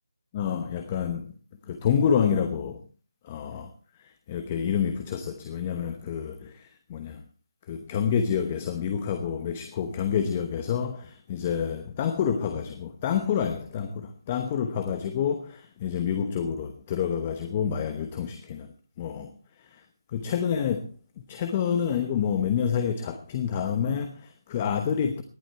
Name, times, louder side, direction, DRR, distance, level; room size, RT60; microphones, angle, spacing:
voice 1, 0.3-1.3 1.7-2.8 3.2-3.7 4.0-7.2 7.7-19.3 19.6-19.8 20.1-20.9 21.3-25.2, left 7 dB, 15° left, 1.0 m, -28 dB
19.0 x 11.5 x 4.5 m
figure-of-eight pair, 175°, 2 cm